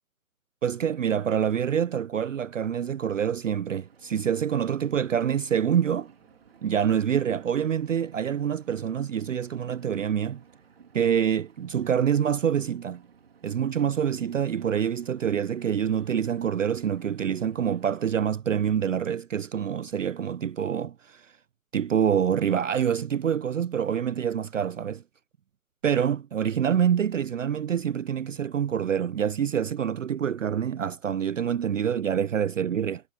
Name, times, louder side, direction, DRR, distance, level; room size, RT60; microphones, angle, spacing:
voice 1, 0.6-6.1 6.6-10.4 10.9-13.0 13.4-21.3 21.7-25.0 25.8-33.0, right 8 dB, 60° right, 0.5 m, -26 dB
Engine, 3.8-18.1, right 6 dB, 45° right, 3.2 m, -57 dB
sound 1, 5.3-11.3, right 8 dB, 5° right, 1.0 m, -67 dB
hypercardioid pair, 180°, 43 cm